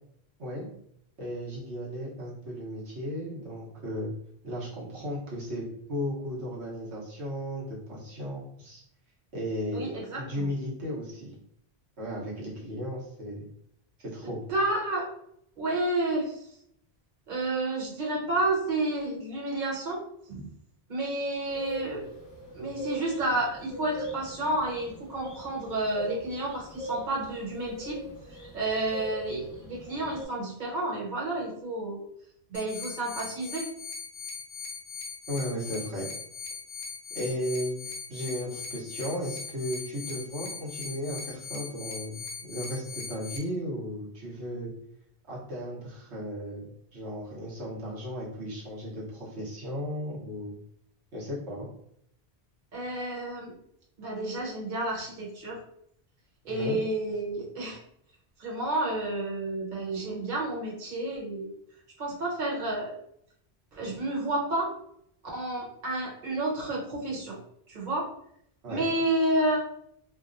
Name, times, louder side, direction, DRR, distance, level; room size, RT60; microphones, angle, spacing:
voice 1, 1.2-4.1 4.4-8.8 9.3-9.9 10.2-11.3 12.0-13.5 14.0-14.4 35.3-36.1 37.1-44.7 45.3-50.6 51.1-51.6 56.5-56.8 68.6-68.8, equal, 90° right, -5 dB, 1.2 m, -35 dB
voice 2, 9.7-10.5 14.2-15.1 15.6-16.5 17.3-20.0 20.3-20.5 20.9-22.1 22.5-28.0 28.5-32.0 32.5-33.7 52.7-53.5 54.0-55.6 56.4-57.8 58.4-61.5 62.0-62.9 63.7-64.7 65.3-67.4 67.7-68.1 68.7-69.6, right 1 dB, 50° right, -4 dB, 1.0 m, -30 dB
sound 1, 21.5-30.3, right 2 dB, 45° left, 0.9 m, -40 dB
sound 2, 32.5-43.4, left 5 dB, 80° left, 0.9 m, -40 dB
2.9 x 2.1 x 2.5 m, 0.70 s
omnidirectional pair, 1.1 m